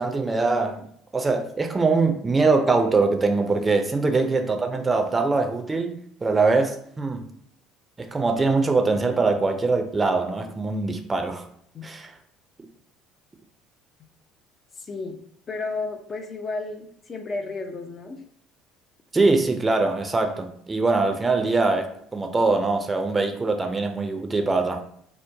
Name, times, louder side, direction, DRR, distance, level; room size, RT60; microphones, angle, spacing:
voice 1, 0.0-6.0 6.2-7.3 8.0-11.5 11.8-12.1 19.1-24.8, right 3 dB, 20° right, 0.5 m, -23 dB
voice 2, 14.8-15.2 15.5-18.2, left 3 dB, 35° left, 0.5 m, -32 dB
3.0 x 2.0 x 3.4 m
supercardioid pair, 75°, 0 cm